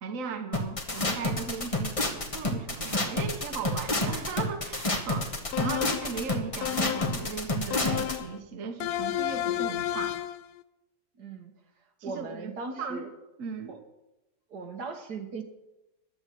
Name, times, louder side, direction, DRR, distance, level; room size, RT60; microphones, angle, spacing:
voice 1, 0.0-10.2 12.0-12.5 12.8-13.0 13.4-13.8, right 5 dB, 55° right, 6 dB, 1.5 m, -37 dB
sound 1, 0.5-8.2, left 2 dB, 20° left, 1.3 m, -29 dB
sound 2, 5.5-6.2 6.6-7.3 7.7-8.4 8.8-10.4, left 13 dB, 75° left, 1.1 m, -31 dB
voice 2, 11.2-11.5 12.0-13.1 13.7-13.8 14.5-15.4, right 4 dB, 80° right, 5 dB, 1.9 m, -38 dB
10.5 x 7.9 x 9.2 m, 0.99 s
omnidirectional pair, 1.7 m